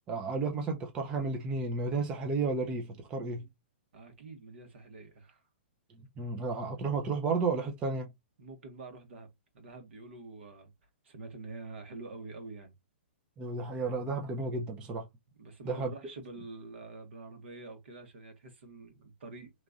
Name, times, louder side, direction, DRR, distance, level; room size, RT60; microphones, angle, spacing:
voice 1, 0.1-3.5 6.2-8.1 13.4-15.1 15.6-15.9, right 3 dB, 15° right, 0.4 m, -32 dB
voice 2, 3.9-5.4 6.7-6.8 8.4-10.7 11.0-12.7 15.4-19.5, right 3 dB, 65° right, 1.2 m, -47 dB
2.9 x 2.4 x 3.8 m
hypercardioid pair, 165°, 7 cm